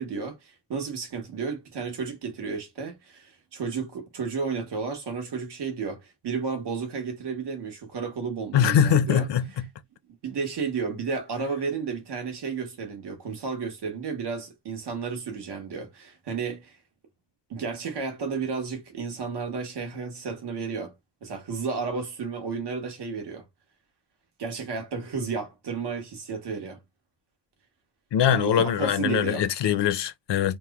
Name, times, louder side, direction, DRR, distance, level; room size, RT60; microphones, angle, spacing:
voice 1, 0.0-9.3 10.2-16.8 17.5-20.9 21.2-23.4 24.4-26.8 28.3-29.4, right 5 dB, 75° right, 1.1 m, -32 dB
voice 2, 8.5-9.7 28.1-30.6, left 9 dB, 85° left, 0.6 m, -22 dB
3.0 x 2.1 x 3.4 m
wide cardioid pair, 170°, 41 cm